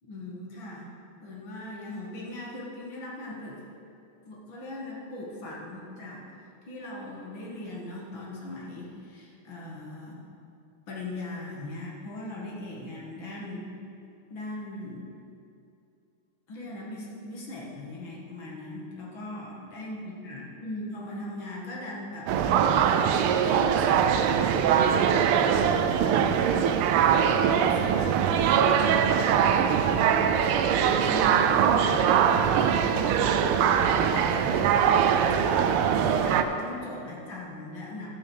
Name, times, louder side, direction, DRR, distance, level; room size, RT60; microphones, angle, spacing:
voice 1, 0.0-0.9 1.2-3.6 4.3-6.3 6.7-10.2 10.9-13.7 14.3-15.0 16.5-22.3 23.4-28.3 28.9-35.5 36.0-38.1, left 1 dB, 65° left, -4 dB, 2.7 m, -39 dB
sound 1, 22.3-36.4, right 8 dB, 80° right, 1.5 m, -22 dB
13.0 x 6.3 x 6.5 m, 2.7 s
omnidirectional pair, 2.4 m